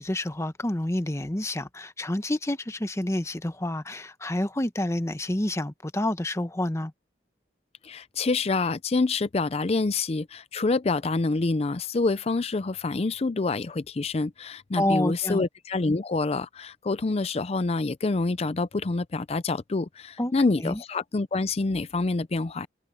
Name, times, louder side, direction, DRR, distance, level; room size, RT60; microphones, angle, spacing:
voice 1, 0.0-6.9 14.8-15.4 20.2-20.3 20.6-20.8, left 1 dB, 15° left, 0.9 m, -28 dB
voice 2, 7.8-22.7, left 3 dB, 35° left, 0.5 m, -27 dB
head